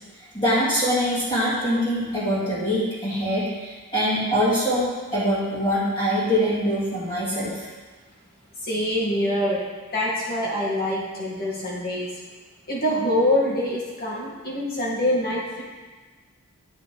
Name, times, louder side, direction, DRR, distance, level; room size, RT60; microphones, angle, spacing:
voice 1, 0.3-7.7, equal, 25° left, -10 dB, 2.0 m, -23 dB
voice 2, 8.6-9.6 9.9-12.2 12.7-15.6, left 1 dB, 45° left, -6 dB, 2.0 m, -25 dB
9.6 x 5.0 x 3.3 m, 1.4 s
head